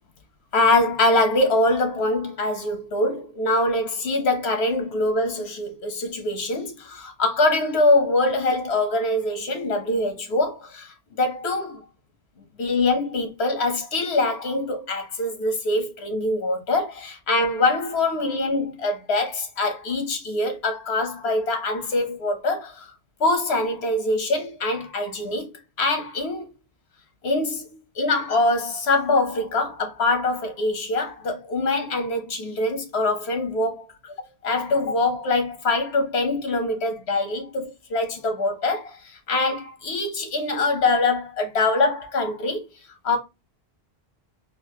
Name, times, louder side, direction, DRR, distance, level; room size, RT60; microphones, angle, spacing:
voice 1, 0.5-11.8 12.6-22.8 23.2-25.5 25.8-26.5 27.2-27.7 28.0-34.1 34.4-39.0 39.3-42.6 43.0-43.2, left 2 dB, 80° left, 1.3 m, -24 dB
3.9 x 2.6 x 2.9 m
omnidirectional pair, 1.1 m